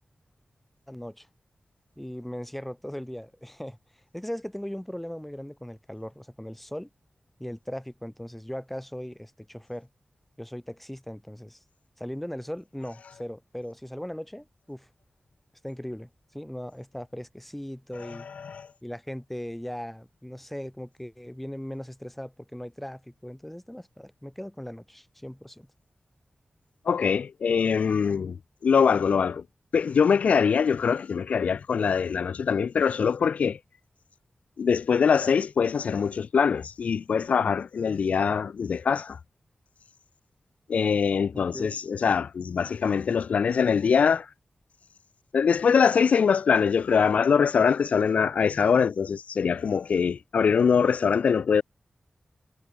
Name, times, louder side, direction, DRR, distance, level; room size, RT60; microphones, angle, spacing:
voice 1, 0.9-1.3 2.0-3.8 4.1-6.9 7.4-9.9 10.4-11.6 12.0-14.9 15.6-16.1 16.3-18.3 18.8-25.7 41.3-41.7, equal, 5° left, 4.4 m, -38 dB
voice 2, 18.1-18.7 26.9-28.4 28.6-29.4 29.7-33.6 34.6-39.2 40.7-44.3 45.3-51.6, left 6 dB, 90° left, 0.3 m, -23 dB
wide cardioid pair, 75°, 2 cm